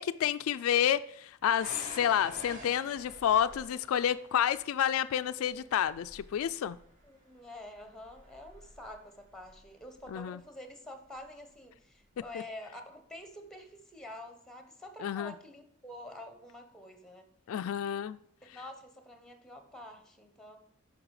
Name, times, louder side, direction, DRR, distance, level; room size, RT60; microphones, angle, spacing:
voice 1, 0.0-6.8 10.1-10.4 15.0-15.3 17.5-18.2, left 9 dB, 80° left, 0.3 m, -29 dB
sound 1, 1.6-10.4 11.1-11.6 12.1-12.3, right 1 dB, 40° right, 1.9 m, -50 dB
voice 2, 7.0-17.3 18.5-20.6, left 1 dB, 5° left, 1.0 m, -48 dB
8.7 x 5.8 x 4.8 m
head